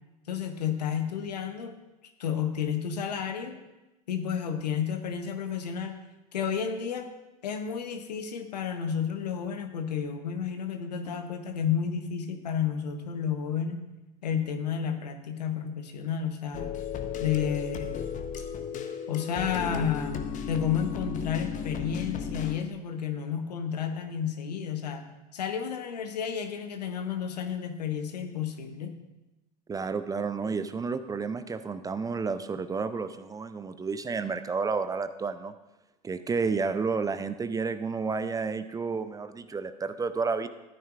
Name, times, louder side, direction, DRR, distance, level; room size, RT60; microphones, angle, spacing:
voice 1, 0.3-1.7 2.2-3.6 4.1-6.0 6.3-7.1 7.4-13.8 14.2-16.8 17.2-18.1 19.1-25.1 25.3-29.0, left 7 dB, 80° left, 6 dB, 1.0 m, -31 dB
sound 1, 16.5-22.6, left 7 dB, 40° left, 0.9 m, -35 dB
voice 2, 29.7-35.5 36.0-40.5, right 4 dB, 15° right, 11 dB, 0.4 m, -31 dB
13.5 x 9.3 x 2.5 m, 1.0 s
hypercardioid pair, 75°, 21 cm